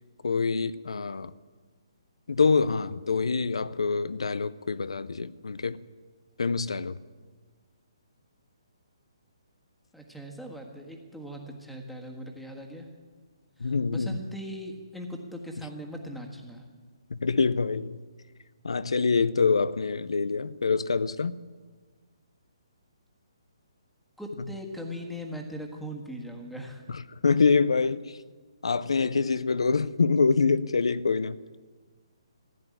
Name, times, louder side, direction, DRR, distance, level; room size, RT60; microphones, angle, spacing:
voice 1, 0.2-1.3 2.3-5.8 6.4-7.0 13.6-14.2 17.1-18.0 18.6-21.3 26.9-28.2 28.6-31.4, left 4 dB, 85° left, 0.5 m, -25 dB
voice 2, 9.9-12.9 13.6-16.6 24.2-26.8, equal, ahead, 1.5 m, -40 dB
15.0 x 7.7 x 9.8 m
hypercardioid pair, 155°, 3 cm